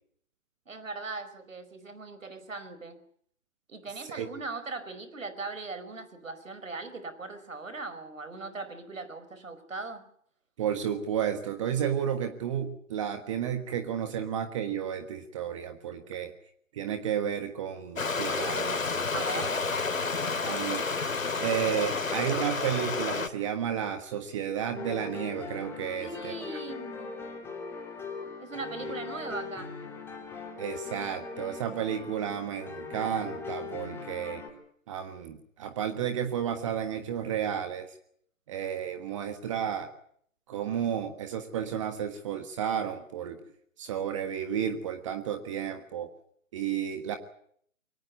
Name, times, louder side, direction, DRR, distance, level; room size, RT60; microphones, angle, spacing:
voice 1, 0.7-3.0 3.7-10.0 19.1-19.6 25.9-27.1 28.4-29.7, right 3 dB, 70° right, 12 dB, 5.1 m, -39 dB
voice 2, 10.6-16.3 16.7-19.2 20.4-20.9 21.4-26.3 30.5-34.4 34.9-37.9 38.5-39.9 40.5-43.4 43.8-46.1 46.5-47.2, right 9 dB, 25° right, 8 dB, 1.5 m, -32 dB
Stream, 18.0-23.3, left 4 dB, 75° left, 2.9 m, -30 dB
sound 1, 24.7-34.5, left 4 dB, 5° left, 2.9 m, -40 dB
23.5 x 18.5 x 8.2 m, 0.64 s
figure-of-eight pair, 150°, 41 cm